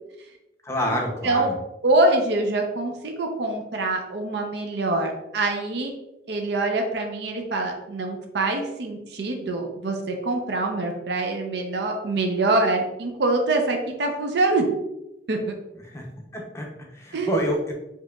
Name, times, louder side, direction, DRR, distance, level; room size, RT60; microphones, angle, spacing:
voice 1, 0.6-1.6 15.8-16.0 16.3-17.7, equal, 15° left, 0 dB, 0.6 m, -28 dB
voice 2, 1.8-5.9 6.3-14.7 15.3-15.4 17.1-17.4, right 2 dB, 65° right, 3 dB, 0.5 m, -24 dB
4.5 x 2.9 x 2.3 m, 0.94 s
head